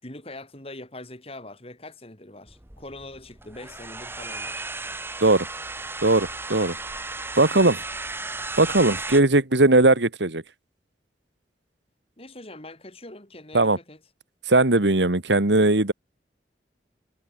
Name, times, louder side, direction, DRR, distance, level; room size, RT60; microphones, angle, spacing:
voice 1, 0.0-4.7 12.2-14.0, left 2 dB, 35° left, 5.1 m, -42 dB
sound 1, 2.5-9.2, right 3 dB, 15° right, 1.7 m, -35 dB
voice 2, 6.0-6.8 7.4-7.8 8.6-10.4 13.5-13.8 14.5-15.9, right 2 dB, 85° right, 2.0 m, -19 dB
head